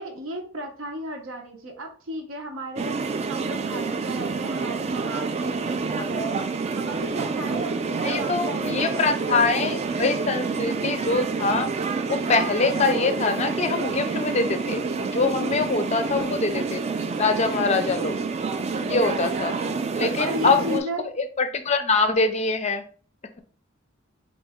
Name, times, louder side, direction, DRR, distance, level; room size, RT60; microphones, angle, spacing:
voice 1, 0.0-2.9 3.3-6.4 6.8-9.9 18.6-19.9 20.2-21.0, right 1 dB, 80° right, 3 dB, 0.9 m, -35 dB
sound 1, 2.8-20.8, right 4 dB, 30° right, 0.3 m, -28 dB
voice 2, 8.0-11.7 12.1-16.8 17.2-18.2 18.8-19.5 19.9-20.8 21.2-22.8, left 4 dB, 35° left, 8 dB, 0.4 m, -24 dB
3.9 x 2.6 x 3.5 m, 0.42 s
head